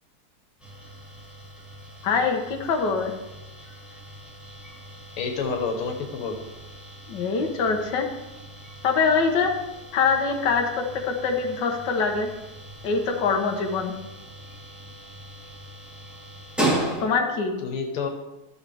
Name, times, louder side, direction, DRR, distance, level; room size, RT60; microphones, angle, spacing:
sound 1, 0.6-17.5, right 1 dB, ahead, 1.8 m, -36 dB
voice 1, 2.0-3.1 7.1-8.1 8.8-9.5 9.9-12.3 12.8-13.9 17.0-17.6, left 5 dB, 60° left, 2 dB, 1.7 m, -24 dB
voice 2, 5.2-6.4 17.6-18.1, left 5 dB, 90° left, 4 dB, 2.2 m, -28 dB
13.0 x 8.0 x 3.4 m, 1.0 s
omnidirectional pair, 2.4 m